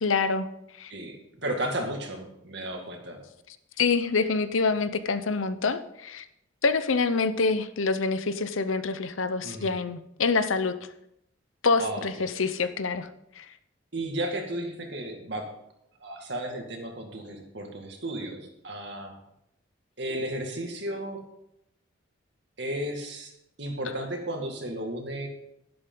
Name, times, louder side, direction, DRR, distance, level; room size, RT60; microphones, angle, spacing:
voice 1, 0.0-0.5 0.8-0.9 3.8-6.2 6.6-10.7 11.6-13.1 13.4-13.5, left 4 dB, 85° left, 12 dB, 0.8 m, -26 dB
voice 2, 0.9-3.2 9.4-9.7 11.8-12.0 12.4-12.5 13.9-15.5 16.0-19.1 20.0-21.2 22.6-23.3 23.6-25.3, right 1 dB, 60° right, 3 dB, 2.1 m, -34 dB
11.5 x 11.0 x 3.9 m, 0.79 s
head